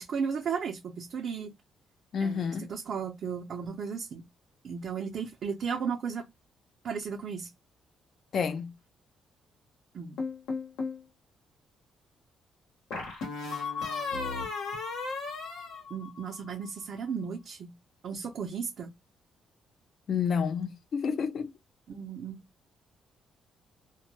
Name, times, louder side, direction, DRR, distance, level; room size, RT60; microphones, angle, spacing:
voice 1, 0.0-1.5 2.2-4.2 4.6-6.3 6.8-7.5 9.9-10.2 15.9-17.7 18.0-18.9 21.9-22.4, right 6 dB, 60° right, 0.5 m, -35 dB
voice 2, 2.1-2.7 8.3-8.7 20.1-21.5, left 6 dB, 60° left, 0.5 m, -29 dB
sound 1, 10.2-11.0 12.9-16.5, left 4 dB, 85° left, 0.9 m, -35 dB
2.2 x 2.0 x 2.9 m
cardioid pair, 90°, 0 cm